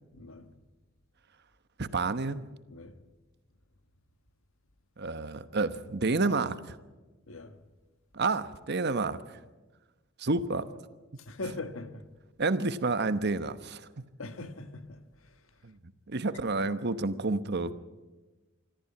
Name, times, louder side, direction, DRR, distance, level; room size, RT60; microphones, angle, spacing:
voice 1, 0.1-0.5 2.7-3.0 7.3-7.6 11.2-12.1 14.2-15.5, left 2 dB, 90° left, 1.5 m, -41 dB
voice 2, 1.8-2.5 5.0-6.8 8.1-9.2 10.2-10.7 12.4-13.9 15.6-15.7 16.1-17.7, right 3 dB, 55° right, 1.0 m, -29 dB
25.0 x 14.0 x 8.7 m
head